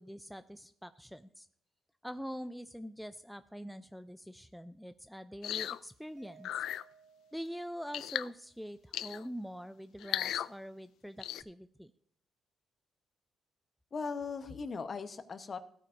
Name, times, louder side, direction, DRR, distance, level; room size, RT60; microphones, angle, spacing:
voice 1, 0.0-1.5 2.0-6.5 7.3-11.9, equal, ahead, 10 dB, 0.4 m, -44 dB
sound 1, 5.4-5.8 6.4-6.8 7.9-8.3 8.9-9.3 10.0-10.5 11.2-11.4, left 11 dB, 75° left, 0.3 m, -36 dB
Mallet percussion, 6.2-8.4, right 5 dB, 35° right, 1.8 m, -61 dB
voice 2, 13.9-15.6, left 5 dB, 40° left, 10 dB, 1.0 m, -38 dB
15.5 x 9.1 x 2.6 m, 0.64 s
cardioid pair, 90°, 0 cm